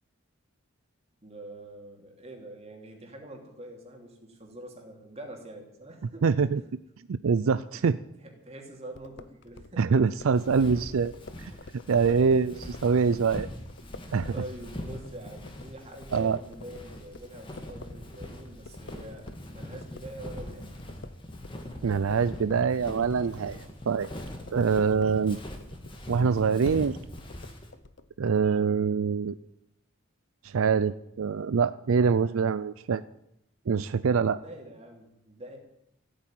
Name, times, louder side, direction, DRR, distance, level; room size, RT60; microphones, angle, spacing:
voice 1, 1.2-6.3 7.7-7.9 8.2-9.8 11.5-11.7 12.1-12.4 13.8-20.7 34.3-35.6, right 1 dB, 30° right, 1 dB, 3.1 m, -45 dB
voice 2, 6.2-6.6 7.1-8.0 9.8-11.1 11.4-11.5 11.9-12.5 12.8-13.5 14.1-14.3 16.1-16.4 21.8-23.6 23.9-24.1 24.5-25.4 26.1-27.0 28.2-29.4 30.4-33.0 33.7-34.4, right 5 dB, 80° right, 14 dB, 0.4 m, -24 dB
sound 1, 8.9-19.5 19.7-28.5, left 3 dB, 55° left, 0.8 m, -48 dB
Walk footsteps, 10.4-27.7, left 1 dB, 25° left, 1.9 m, -42 dB
15.0 x 8.9 x 9.1 m, 0.80 s
head